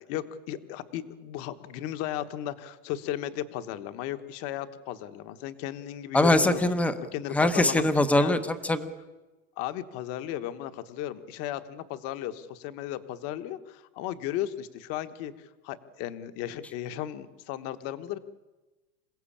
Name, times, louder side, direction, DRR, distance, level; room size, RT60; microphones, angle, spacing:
voice 1, 0.0-6.6 7.1-7.8 8.1-8.4 9.6-18.2, left 12 dB, 35° left, 10 dB, 1.3 m, -35 dB
voice 2, 6.1-6.9 7.3-8.9, left 1 dB, 5° left, 10 dB, 0.8 m, -22 dB
27.0 x 17.0 x 8.7 m, 1.1 s
supercardioid pair, 165°, 43 cm